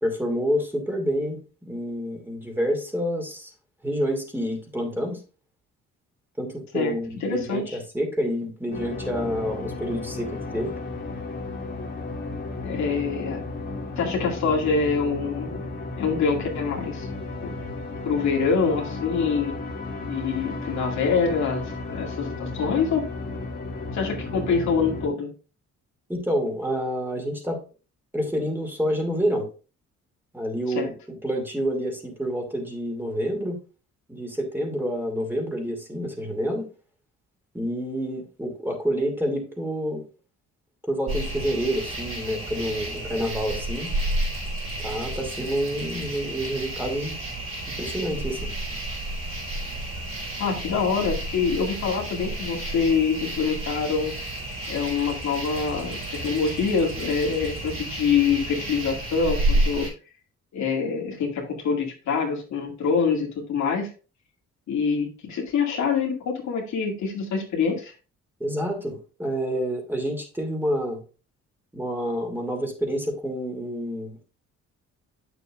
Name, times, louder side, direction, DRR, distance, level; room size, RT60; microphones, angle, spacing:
voice 1, 0.0-3.5 3.8-5.2 6.4-10.7 26.1-27.6 28.1-29.5 30.3-33.6 34.1-36.7 37.5-40.0 40.9-43.9 44.8-47.2 47.8-48.5 68.4-71.0 71.7-74.2, equal, 5° right, 2 dB, 2.6 m, -28 dB
voice 2, 7.2-7.8 12.6-13.4 14.0-15.7 16.0-17.1 17.4-17.5 18.0-19.5 20.1-23.0 23.9-25.3 30.7-30.9 50.4-54.1 54.7-59.9 60.5-63.9 64.7-67.9, left 5 dB, 65° left, 0 dB, 2.3 m, -25 dB
sound 1, 8.7-25.1, left 3 dB, 35° left, 2.1 m, -34 dB
sound 2, 41.1-59.9, right 1 dB, 45° right, 4.5 m, -31 dB
8.4 x 6.9 x 2.5 m, 0.35 s
cardioid pair, 90°, 30 cm